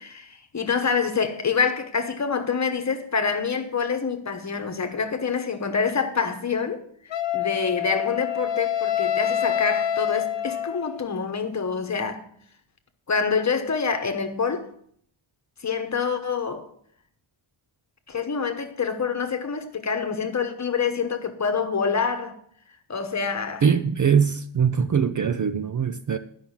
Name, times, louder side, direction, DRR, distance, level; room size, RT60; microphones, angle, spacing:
voice 1, 0.0-6.8 7.3-12.2 13.1-14.7 15.6-16.7 18.1-22.3 22.9-23.6, left 5 dB, 35° left, 1.1 m, -26 dB
Wind instrument woodwind instrument, 7.1-11.1, left 10 dB, 65° left, 0.9 m, -26 dB
voice 2, 23.6-26.2, right 7 dB, 40° right, 0.5 m, -22 dB
11.0 x 5.7 x 7.2 m
wide cardioid pair, 165°, 48 cm